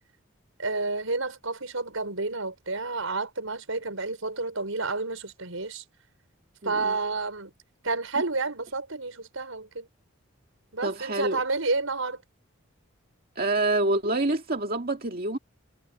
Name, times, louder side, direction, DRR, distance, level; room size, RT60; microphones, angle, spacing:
voice 1, 0.6-5.8 6.6-7.5 7.8-9.9 10.7-12.2, right 3 dB, 85° right, 5.5 m, -30 dB
voice 2, 6.6-7.0 10.8-11.4 13.4-15.4, right 2 dB, 45° right, 2.1 m, -27 dB
head